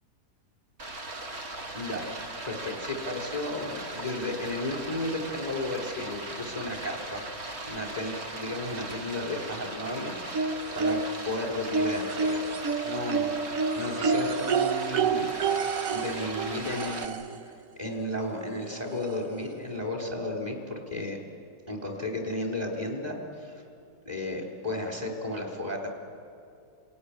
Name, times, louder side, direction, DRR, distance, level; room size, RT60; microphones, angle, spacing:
Stream, 0.8-17.1, right 2 dB, 40° right, 1.8 m, -39 dB
voice 1, 1.7-2.1 2.4-7.2 7.6-11.0 11.2-12.5 12.8-13.3 13.8-15.4 15.9-21.2 21.7-23.6 24.1-25.9, left 1 dB, 25° right, 1 dB, 3.8 m, -34 dB
sound 1, 10.3-11.3 11.7-17.4 18.6-18.7 19.1-19.2, right 4 dB, 60° right, 1.3 m, -29 dB
28.0 x 17.0 x 10.0 m, 2.5 s
omnidirectional pair, 1.8 m